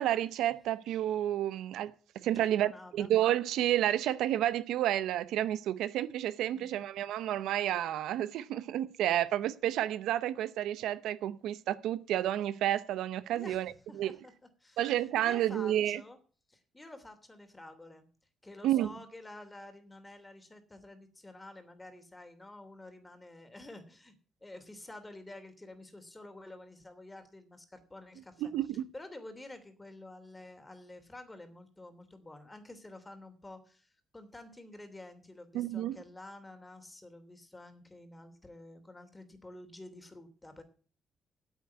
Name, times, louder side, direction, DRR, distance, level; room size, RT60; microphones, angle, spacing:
voice 1, 0.0-1.9 2.2-14.2 14.8-16.0 18.6-18.9 28.4-28.8 35.5-36.0, right 12 dB, 85° right, 0.7 m, -30 dB
voice 2, 2.3-3.1 6.5-6.9 13.3-14.3 14.6-16.2 16.5-18.1 18.4-24.1 24.4-28.5 28.9-40.6, left 2 dB, 15° left, 2.9 m, -50 dB
9.2 x 8.0 x 9.4 m
cardioid pair, 90°, 0 cm